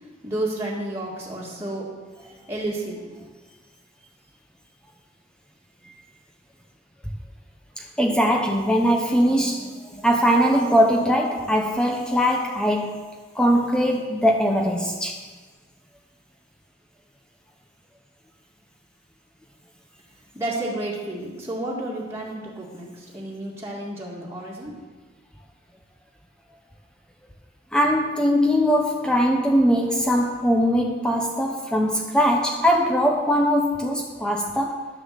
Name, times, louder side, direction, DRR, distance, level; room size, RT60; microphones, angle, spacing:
voice 1, 0.2-1.9 2.5-3.2 20.3-24.8, right 1 dB, 15° right, -6 dB, 2.1 m, -31 dB
voice 2, 7.8-13.1 13.3-15.2 27.7-34.9, equal, 5° left, 1 dB, 0.8 m, -21 dB
11.5 x 6.8 x 7.5 m, 1.4 s
head